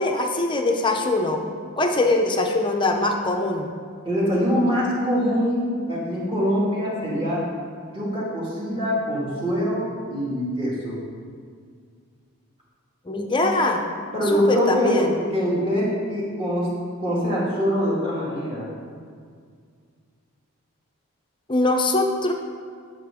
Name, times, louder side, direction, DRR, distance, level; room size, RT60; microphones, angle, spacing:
voice 1, 0.0-1.4 1.8-3.7 13.1-13.8 14.3-15.2 21.5-22.3, left 2 dB, 20° left, 3 dB, 0.7 m, -22 dB
voice 2, 4.0-7.5 7.9-11.0 14.1-16.7 17.0-18.7, equal, 25° right, -6 dB, 2.3 m, -23 dB
13.0 x 6.6 x 3.6 m, 2.1 s
head